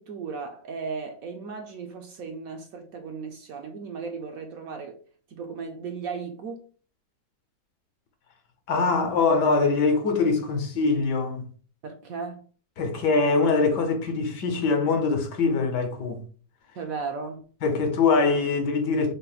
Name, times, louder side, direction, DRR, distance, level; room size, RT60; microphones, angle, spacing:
voice 1, 0.0-5.0 5.3-6.7 11.8-12.4 16.7-17.5, right 5 dB, 65° right, 0.9 m, -36 dB
voice 2, 8.7-11.5 12.8-16.2 17.6-19.1, left 4 dB, 75° left, 1.5 m, -23 dB
5.7 x 2.1 x 3.8 m
omnidirectional pair, 1.9 m